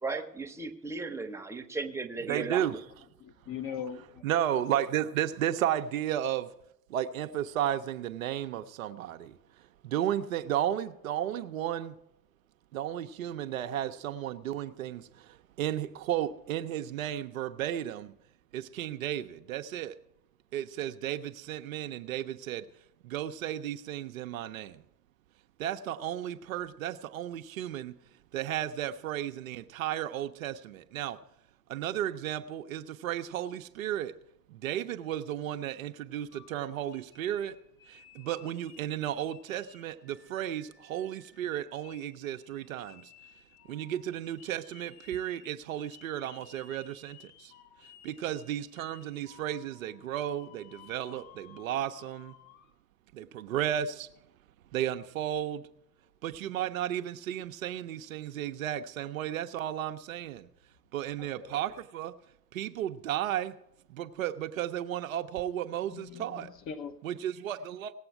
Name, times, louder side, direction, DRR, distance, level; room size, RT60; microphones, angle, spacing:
voice 1, 0.0-2.8, right 4 dB, 5° right, 1.0 m, -36 dB
voice 2, 2.3-2.8 4.2-6.5 6.9-9.4 9.8-12.0 12.7-18.1 18.5-19.9 20.5-22.7 23.0-24.8 25.6-28.0 28.3-31.2 31.7-34.1 34.5-37.6 37.9-43.1 43.7-47.5 48.0-52.3 53.1-54.1 54.7-55.7 56.2-60.5 60.9-62.1 62.5-63.5 63.9-66.5 67.0-67.9, right 11 dB, 55° right, 0.8 m, -34 dB
voice 3, 3.2-4.2 61.2-61.5 65.8-67.0, left 7 dB, 25° left, 0.8 m, -41 dB
sound 1, 36.3-39.0 39.3-52.7, left 10 dB, 60° left, 3.2 m, -57 dB
18.0 x 7.8 x 5.9 m
figure-of-eight pair, 85°, 49 cm